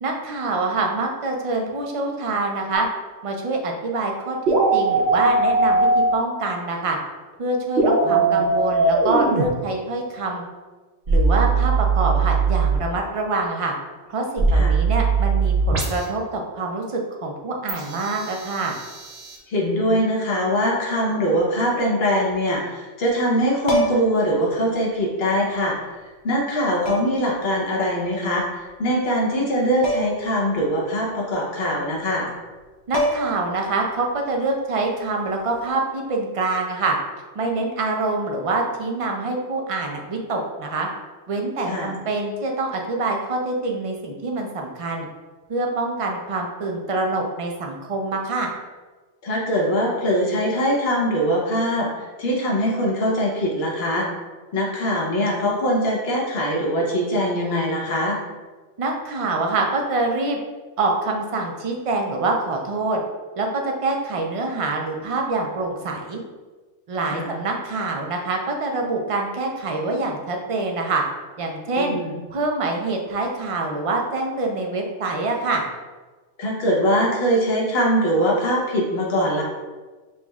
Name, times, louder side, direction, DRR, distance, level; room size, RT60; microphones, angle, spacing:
voice 1, 0.0-2.9 3.2-7.0 7.4-10.4 11.1-13.7 14.1-18.7 32.9-36.9 37.3-40.9 41.3-45.1 45.5-48.5 58.8-60.4 60.8-63.0 63.4-66.2 66.9-71.0 71.4-72.0 72.3-75.6, right 3 dB, 45° right, 1 dB, 0.4 m, -25 dB
sound 1, 2.7-2.8 4.5-6.1 7.8-9.5 11.1-12.8 14.4-16.1 17.7-19.4, right 3 dB, 65° right, 1.1 m, -20 dB
voice 2, 8.0-8.5 14.5-14.7 19.5-25.9 26.2-32.3 41.6-41.9 49.2-54.1 54.5-58.2 67.0-67.3 71.8-72.2 76.4-79.4, equal, 60° left, -3 dB, 1.2 m, -22 dB
sound 2, 23.6-24.2 25.6-25.7 26.8-27.3 29.8-30.3 30.6-30.7 32.5-32.6 32.9-33.5 35.5-35.7, equal, 35° left, 0.5 m, -25 dB
5.6 x 3.0 x 2.3 m, 1.3 s
omnidirectional pair, 1.2 m